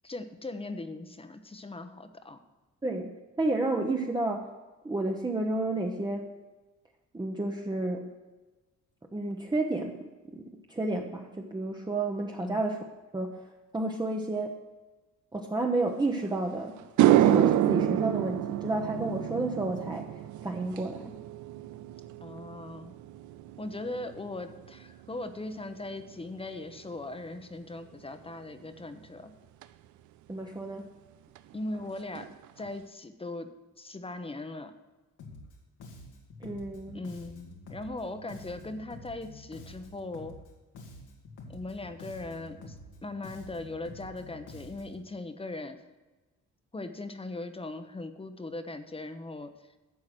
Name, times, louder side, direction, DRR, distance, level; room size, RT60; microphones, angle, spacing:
voice 1, 0.0-2.4 12.4-12.7 22.2-22.9 23.6-29.3 31.5-33.5 33.8-34.7 36.9-40.4 41.5-42.8 43.0-45.8 46.7-49.5, left 2 dB, 20° left, 9 dB, 0.9 m, -39 dB
voice 2, 2.8-4.5 4.8-6.3 7.1-8.1 9.1-10.4 10.7-12.8 13.1-13.4 13.7-14.6 15.3-16.8 17.1-20.1 20.4-21.2 30.3-30.9 36.4-37.0, right 2 dB, 15° right, 1 dB, 1.0 m, -31 dB
sound 1, 16.3-16.4 16.8-25.3 25.6-26.0 29.6-29.7 31.4-31.5 31.7-31.9 32.1-32.7, right 12 dB, 75° right, 0.5 m, -28 dB
Bass guitar, 35.2-35.5 35.8-40.5 40.7-45.1, left 2 dB, 85° left, 1.9 m, -48 dB
12.0 x 4.7 x 7.7 m, 1.2 s
cardioid pair, 90°, 30 cm